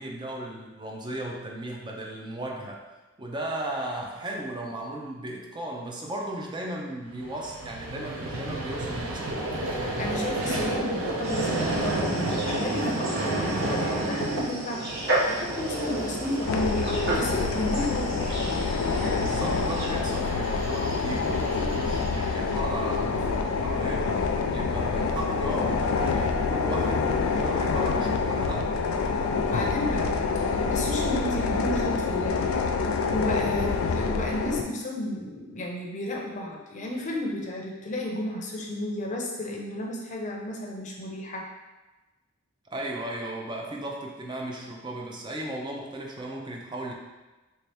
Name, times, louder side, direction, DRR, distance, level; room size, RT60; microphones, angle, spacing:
voice 1, 0.0-2.9 3.2-9.5 19.2-24.1 24.5-28.7 42.7-46.9, right 1 dB, 20° right, -1 dB, 0.5 m, -35 dB
Vehicle, 7.1-23.5, right 1 dB, 85° right, 0.6 m, -32 dB
voice 2, 9.8-18.7 29.4-30.1 30.4-41.5, left 1 dB, 35° left, -1 dB, 0.6 m, -33 dB
sound 1, 11.2-19.9, right 1 dB, 50° right, 0.8 m, -34 dB
sound 2, 16.5-34.6, left 4 dB, 80° left, 0.3 m, -27 dB
3.4 x 2.8 x 3.3 m, 1.1 s
head